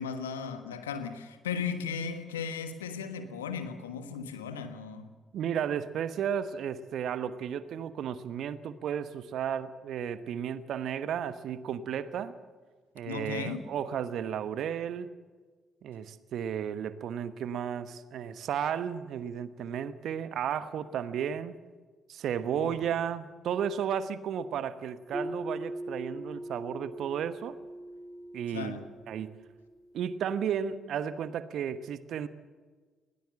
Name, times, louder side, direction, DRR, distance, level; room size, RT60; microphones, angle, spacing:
voice 1, 0.0-5.1 13.0-13.7 22.5-22.8 28.5-28.8, left 6 dB, 85° left, 1.4 m, -36 dB
voice 2, 5.3-12.3 12.9-15.1 15.8-21.5 22.1-27.6 28.3-29.4 29.9-32.3, right 8 dB, 60° right, 1.1 m, -33 dB
sound 1, 25.1-29.8, right 1 dB, 10° right, 2.1 m, -41 dB
20.5 x 17.5 x 7.7 m
hypercardioid pair, 45°, 0 cm